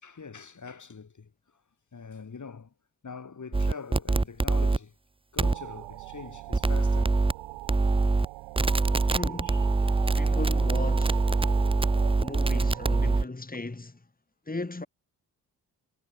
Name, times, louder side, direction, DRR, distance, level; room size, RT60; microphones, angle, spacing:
voice 1, 0.0-1.3 1.9-2.7 3.0-4.9 5.3-7.2 9.4-9.7, left 5 dB, 45° left, 4.4 m, -43 dB
sound 1, 3.5-4.8 5.4-5.5 6.5-7.3 7.7-8.3 8.6-13.2, right 3 dB, 15° right, 0.8 m, -24 dB
sound 2, 5.4-13.2, right 22 dB, 90° right, 6.2 m, -41 dB
voice 2, 9.1-9.7 10.1-11.3 12.2-14.1 14.5-14.9, left 2 dB, 20° left, 3.7 m, -37 dB
hypercardioid pair, 45°, 43 cm